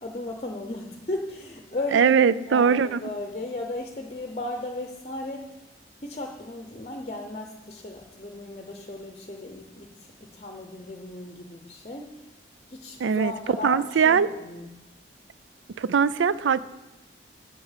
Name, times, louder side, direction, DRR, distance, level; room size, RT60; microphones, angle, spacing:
voice 1, 0.0-5.5 6.0-9.9 10.2-12.1 12.7-14.7, left 2 dB, 35° left, 2 dB, 0.7 m, -35 dB
voice 2, 1.9-3.0 13.0-14.3 15.8-16.6, right 6 dB, 80° right, 17 dB, 0.4 m, -21 dB
7.7 x 6.9 x 7.4 m, 1.0 s
head